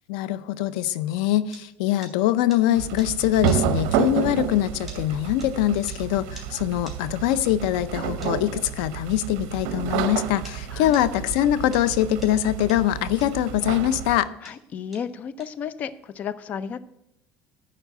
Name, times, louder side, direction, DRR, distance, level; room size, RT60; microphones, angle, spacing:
voice 1, 0.1-14.3, left 12 dB, 90° left, 16 dB, 0.6 m, -23 dB
sound 1, 0.9-10.6 10.9-16.2, right 2 dB, 5° right, 2.9 m, -47 dB
sound 2, 2.8-14.2, right 9 dB, 75° right, 0.8 m, -30 dB
voice 2, 10.7-11.0 14.4-16.8, left 7 dB, 40° left, 15 dB, 0.6 m, -33 dB
11.0 x 4.6 x 8.0 m, 0.81 s
cardioid pair, 135°, 4 cm